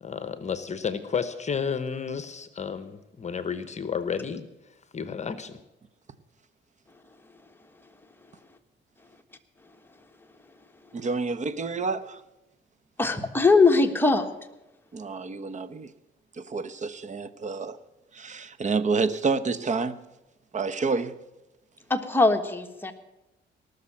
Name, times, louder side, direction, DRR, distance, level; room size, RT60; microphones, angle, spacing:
voice 1, 0.0-4.5 4.9-5.6, left 6 dB, 35° left, 1.0 m, -31 dB
voice 2, 10.9-12.2 14.9-15.9 16.4-17.8 18.1-20.0 20.5-21.1, right 4 dB, 35° right, 0.9 m, -28 dB
voice 3, 13.0-14.2 21.9-22.9, left 3 dB, 10° left, 1.4 m, -21 dB
18.5 x 6.6 x 8.7 m
cardioid pair, 90°, 20 cm